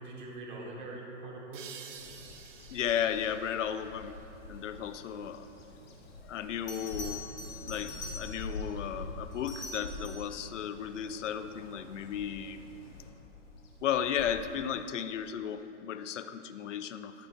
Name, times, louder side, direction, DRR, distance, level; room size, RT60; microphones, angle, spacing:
voice 1, 0.0-1.8 7.0-7.2, right 2 dB, 45° right, -2 dB, 1.4 m, -43 dB
sound 1, 1.5-4.9, right 7 dB, 85° right, 0.8 m, -51 dB
Bird vocalization bird call bird song, 2.0-15.2, left 2 dB, 55° left, 1.3 m, -46 dB
voice 2, 2.7-4.2 4.5-5.5 6.3-7.3 7.7-12.6 13.8-17.3, left 9 dB, 80° left, 11 dB, 0.6 m, -34 dB
Bell, 6.7-8.6 9.3-10.4 13.1-13.3, left 3 dB, 10° left, 0.9 m, -44 dB
13.0 x 7.3 x 2.5 m, 2.9 s
hypercardioid pair, 165°, 36 cm